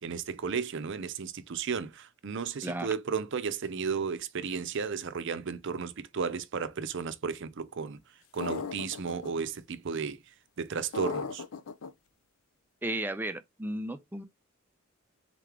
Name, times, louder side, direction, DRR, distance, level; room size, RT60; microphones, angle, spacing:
voice 1, 0.0-11.4, right 5 dB, 65° right, 0.5 m, -34 dB
sound 1, 8.4-9.3 10.9-11.9, left 5 dB, 85° left, 0.5 m, -36 dB
voice 2, 12.8-14.2, right 1 dB, 10° right, 0.4 m, -34 dB
3.8 x 3.5 x 3.3 m
head